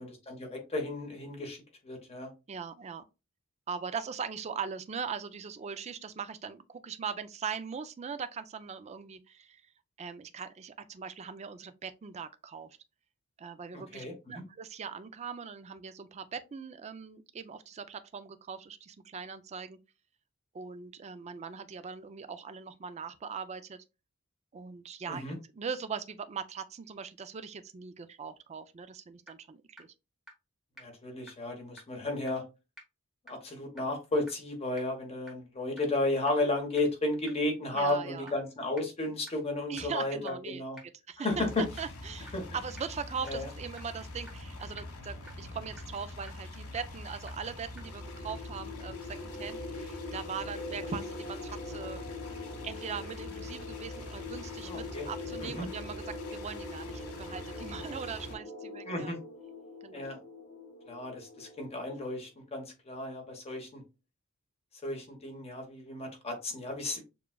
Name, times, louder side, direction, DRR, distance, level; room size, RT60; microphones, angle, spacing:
voice 1, 0.0-1.6 1.8-2.3 13.7-14.4 25.1-25.4 30.8-32.4 33.3-40.8 41.2-41.6 42.3-42.4 43.3-43.5 54.6-55.1 55.4-55.7 58.9-59.2 59.9-60.2 60.9-63.8 64.8-67.0, left 2 dB, 30° left, 1.1 m, -33 dB
voice 2, 2.5-3.0 3.7-9.6 10.0-12.8 13.4-19.8 20.5-23.8 24.5-25.2 25.5-29.9 37.7-38.3 39.7-40.6 41.1-52.1 52.6-59.1 59.8-60.1, right 6 dB, 30° right, 0.3 m, -40 dB
sound 1, 28.8-28.9 29.3-29.4 29.8-29.9 30.3-30.4 30.8-30.9 31.3-31.4 31.8-31.9 32.3-32.4 32.8-32.9 33.3-33.4 33.8-33.9 34.3-34.4 34.8-34.9 35.3-35.4 35.8-35.9 36.3-36.4 36.8-36.9 37.3-37.4 37.8-37.9 38.3-38.4 38.8-38.9 39.3-39.4 39.8-39.9 40.3-40.4 40.8-40.9 41.3-41.4 41.8-41.9 42.3-42.4 42.8-42.9 43.3-43.4 43.8-43.9 44.3-44.4 44.8-44.9 45.3-45.4 45.8-45.9 46.3-46.4 46.8-46.9 47.3-47.4 47.8-47.9, right 1 dB, ahead, 1.1 m, -48 dB
sound 2, 41.3-58.4, left 2 dB, 80° left, 0.9 m, -45 dB
sound 3, 47.7-62.1, left 2 dB, 55° left, 1.1 m, -43 dB
6.7 x 2.3 x 2.2 m
head